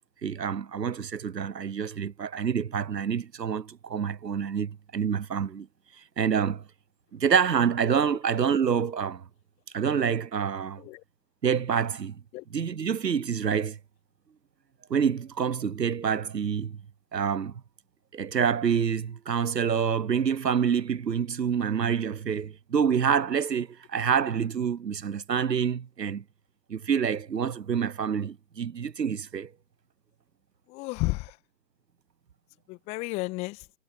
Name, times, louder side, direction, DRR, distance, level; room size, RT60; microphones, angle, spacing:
voice 1, 0.2-5.7 6.2-6.6 7.1-9.2 9.7-10.8 11.4-12.2 12.5-13.8 14.9-16.8 17.1-17.5 18.1-26.2 26.7-29.5, right 7 dB, 80° right, 0.8 m, -27 dB
voice 2, 30.7-31.4 32.7-33.6, left 23 dB, 15° left, 1.6 m, -32 dB
figure-of-eight pair, 135°, 49 cm